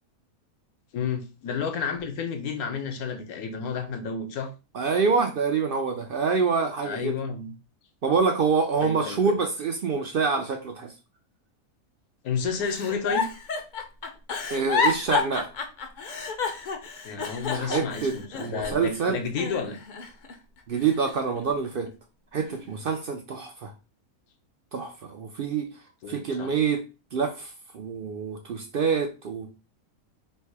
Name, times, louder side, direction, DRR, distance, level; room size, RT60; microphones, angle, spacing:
voice 1, 0.9-4.5 6.8-7.5 8.8-9.2 12.2-13.3 17.0-19.8 26.0-26.5, left 5 dB, 80° left, 1.3 m, -31 dB
voice 2, 4.7-7.2 8.0-10.9 14.5-15.5 17.5-19.2 20.7-21.9 22.3-23.7 24.7-25.7 26.1-26.8 27.1-29.6, right 5 dB, 70° right, 0.5 m, -26 dB
Giggle, 12.6-19.0 19.4-20.3 20.8-21.9 22.4-22.8, left 5 dB, 50° left, 0.6 m, -30 dB
3.3 x 2.7 x 4.6 m
omnidirectional pair, 1.6 m